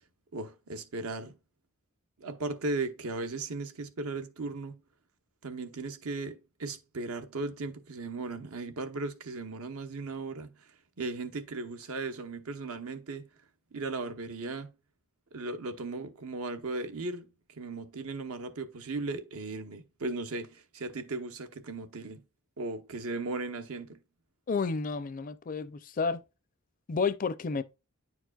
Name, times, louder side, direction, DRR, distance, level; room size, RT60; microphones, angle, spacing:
voice 1, 0.3-1.4 2.2-4.8 5.4-13.3 13.7-14.7 15.3-22.2 22.6-24.0, right 3 dB, 75° right, 0.9 m, -37 dB
voice 2, 24.5-26.2 26.9-27.6, left 4 dB, 40° left, 0.4 m, -31 dB
9.6 x 4.6 x 2.3 m
head